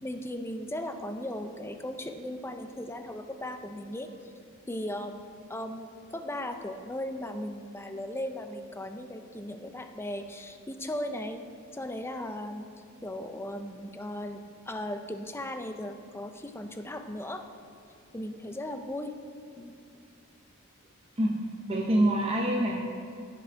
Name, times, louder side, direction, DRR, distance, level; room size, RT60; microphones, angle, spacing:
voice 1, 0.0-4.1 4.7-5.2 5.5-11.4 11.7-12.7 13.0-17.4 18.1-19.1 19.6-19.7, left 1 dB, 10° left, 6 dB, 0.6 m, -37 dB
voice 2, 21.2-22.9, right 1 dB, 30° right, -2 dB, 0.9 m, -26 dB
16.5 x 6.1 x 4.5 m, 2.6 s
head